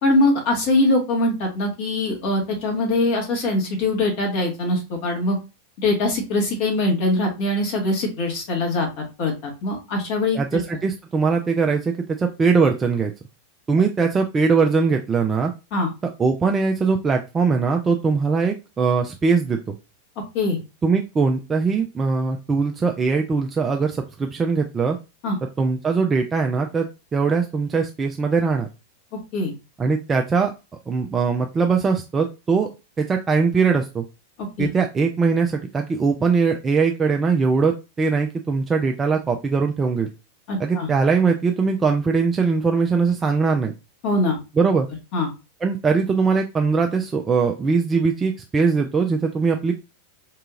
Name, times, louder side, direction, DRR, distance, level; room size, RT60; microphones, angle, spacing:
voice 1, 0.0-5.4 5.8-10.6 15.7-15.9 20.3-20.6 25.2-25.4 29.3-29.5 34.6-34.7 40.5-40.9 44.0-44.4 45.1-45.3, left 2 dB, 45° left, -1 dB, 1.5 m, -22 dB
voice 2, 10.3-13.1 13.7-15.5 16.2-19.7 20.8-25.0 25.6-28.7 29.8-30.5 30.9-32.7 33.0-34.0 34.6-40.1 40.6-43.7 44.6-44.9 45.6-49.7, right 5 dB, 20° right, 3 dB, 0.4 m, -21 dB
4.7 x 2.8 x 2.4 m, 0.28 s
figure-of-eight pair, 90°, 0 cm